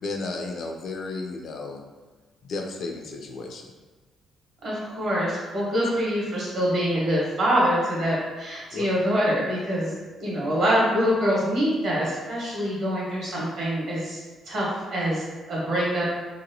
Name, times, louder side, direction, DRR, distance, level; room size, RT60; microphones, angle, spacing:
voice 1, 0.0-1.8 2.4-3.7 8.7-8.9, left 3 dB, 60° left, 2 dB, 0.4 m, -33 dB
voice 2, 4.6-14.2 14.5-16.1, equal, 65° right, -6 dB, 1.2 m, -25 dB
2.9 x 2.2 x 2.6 m, 1.3 s
cardioid pair, 90°, 0 cm